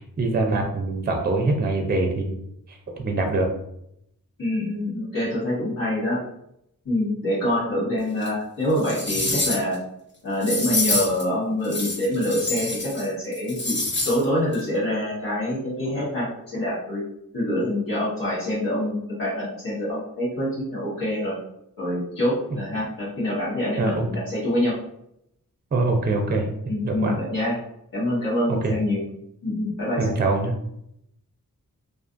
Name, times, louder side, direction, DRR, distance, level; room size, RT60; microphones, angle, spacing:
voice 1, 0.0-2.4 2.7-3.5 23.8-24.0 25.7-26.5 26.8-27.2 28.5-28.7 30.0-30.5, right 3 dB, 30° right, 2 dB, 0.4 m, -24 dB
voice 2, 4.4-6.2 6.8-9.8 10.2-13.8 14.0-17.0 17.3-21.4 21.8-24.7 26.7-27.6 27.9-29.0 29.4-30.1, left 1 dB, 75° left, -9 dB, 1.2 m, -25 dB
sound 1, 8.2-8.3 8.8-9.7 10.4-11.2 11.6-13.1 13.3-14.2 14.5-14.6, left 2 dB, 35° left, 0.7 m, -26 dB
2.4 x 2.4 x 2.4 m, 0.77 s
wide cardioid pair, 60°, 34 cm